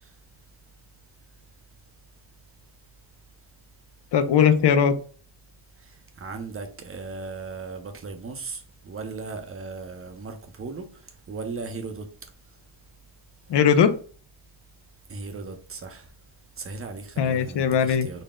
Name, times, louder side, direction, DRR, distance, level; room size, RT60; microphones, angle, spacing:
voice 1, 4.1-4.9 13.5-13.9 17.2-18.1, left 7 dB, 55° left, 0.6 m, -19 dB
voice 2, 5.8-10.9 11.3-12.1 15.1-16.1 16.6-18.2, right 4 dB, 25° right, 0.6 m, -37 dB
4.0 x 2.1 x 3.6 m
cardioid pair, 125°, 50 cm